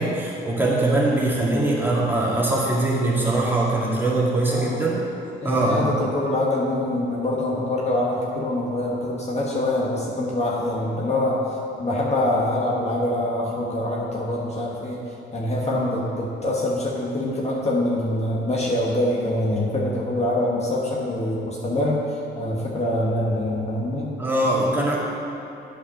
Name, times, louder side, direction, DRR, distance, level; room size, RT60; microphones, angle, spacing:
voice 1, 0.0-4.9 5.4-5.9 15.7-15.8 24.2-25.0, right 2 dB, 10° right, -6 dB, 2.2 m, -22 dB
voice 2, 4.5-4.9 5.4-11.4 11.8-15.0 15.3-24.1, left 1 dB, 35° left, -4 dB, 1.3 m, -25 dB
8.5 x 5.2 x 6.4 m, 2.8 s
cardioid pair, 90°, 20 cm